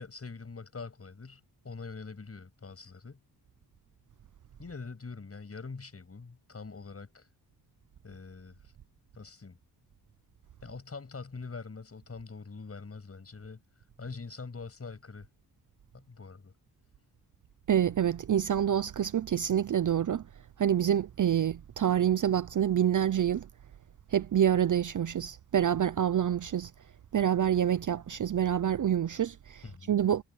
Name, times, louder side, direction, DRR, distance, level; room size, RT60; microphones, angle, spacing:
voice 1, 0.0-3.2 4.6-7.3 8.0-8.6 9.1-9.6 10.6-13.6 14.0-15.3 15.9-16.5 29.6-30.0, left 4 dB, 35° left, 7.5 m, -44 dB
voice 2, 17.7-20.3 20.6-23.5 24.1-26.7 27.1-29.6 29.9-30.2, right 9 dB, 50° right, 0.5 m, -27 dB
wide cardioid pair, 170°, 40 cm